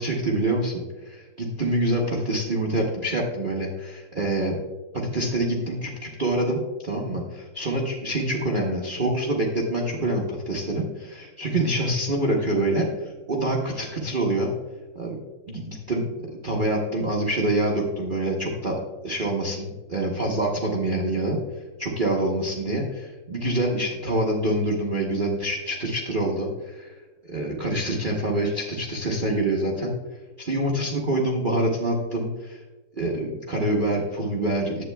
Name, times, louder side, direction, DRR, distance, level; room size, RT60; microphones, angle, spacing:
voice 1, 0.0-4.6 4.9-14.5 14.9-15.2 15.5-16.1 16.4-21.4 21.8-26.9 27.3-29.9 30.4-32.6 33.0-34.8, right 1 dB, 55° right, -2 dB, 0.5 m, -26 dB
11.0 x 8.4 x 2.2 m, 1.2 s
omnidirectional pair, 2.2 m